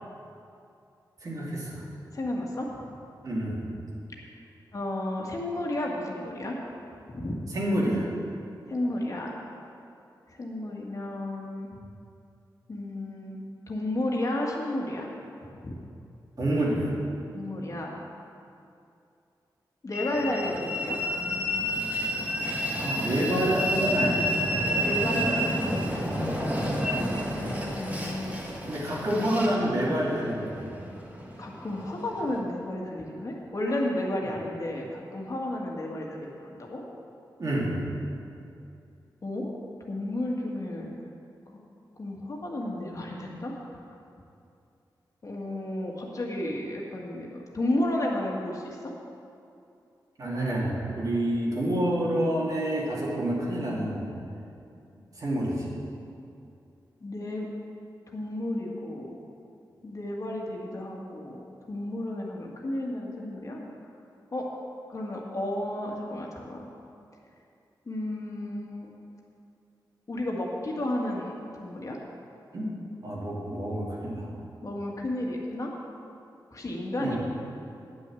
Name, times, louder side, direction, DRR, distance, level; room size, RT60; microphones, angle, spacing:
voice 1, 1.2-1.8 3.2-3.7 7.5-8.1 16.4-16.9 22.7-24.3 26.7-26.9 28.7-30.7 37.4-37.9 50.2-54.1 55.2-55.7 72.5-72.7 73.0-74.3 77.0-77.2, right 1 dB, 50° right, -5 dB, 2.5 m, -28 dB
voice 2, 2.1-2.9 4.7-6.6 7.1-7.4 8.7-9.4 10.4-11.7 12.7-15.1 15.6-15.8 16.4-16.5 17.3-17.9 19.8-21.0 24.8-25.9 27.2-28.8 31.4-36.8 39.2-39.5 39.9-41.0 41.5-41.6 42.0-43.5 45.2-48.8 57.0-57.5 58.1-59.2 59.8-61.4 61.7-63.7 64.3-64.4 64.9-66.7 67.9-68.9 70.1-71.3 71.6-72.0 74.6-75.7 76.5-77.2, left 1 dB, 45° left, -2 dB, 1.7 m, -32 dB
Train, 19.9-32.4, equal, 20° right, 1.7 m, -30 dB
10.0 x 6.3 x 8.4 m, 2.6 s
wide cardioid pair, 125°, 8 cm